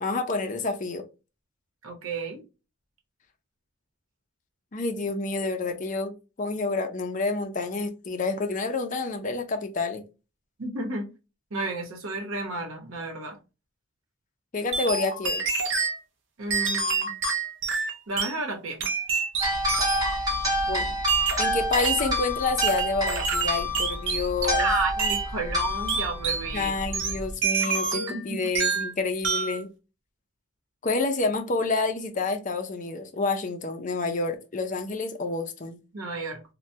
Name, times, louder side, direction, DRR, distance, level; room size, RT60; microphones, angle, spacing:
voice 1, 0.0-1.0 4.7-10.0 14.5-15.4 20.7-20.9 21.4-24.7 26.5-29.7 30.8-35.8, left 3 dB, 35° left, 0.5 m, -28 dB
voice 2, 1.8-2.4 10.6-11.1 11.5-13.4 16.4-17.1 18.1-18.8 24.6-26.7 27.6-28.4 35.9-36.4, right 2 dB, 80° right, 0.9 m, -32 dB
sound 1, 14.7-16.0 16.5-18.4 18.8-20.2 21.1-22.1 22.6-24.7 25.0-25.3 25.9-26.5 26.9-28.2 28.5-28.9 29.2-29.6, right 5 dB, 55° right, 0.6 m, -27 dB
sound 2, 19.4-27.3, left 1 dB, 15° right, 1.0 m, -28 dB
3.2 x 2.2 x 2.7 m
head